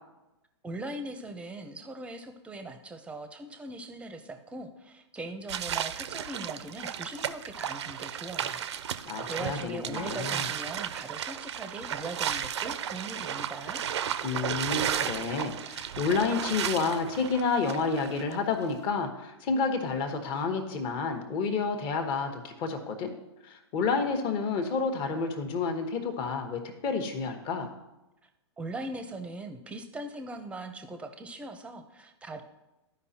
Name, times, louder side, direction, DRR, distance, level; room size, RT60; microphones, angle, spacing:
voice 1, 0.6-8.6 9.2-13.8 28.6-32.4, right 2 dB, 10° right, 7 dB, 0.7 m, -40 dB
sound 1, 5.5-18.4, right 9 dB, 70° right, 0.5 m, -34 dB
voice 2, 9.0-10.5 14.2-23.1 23.4-27.7, left 4 dB, 35° left, 5 dB, 1.2 m, -30 dB
13.5 x 5.1 x 2.8 m, 0.97 s
hypercardioid pair, 120°, 15 cm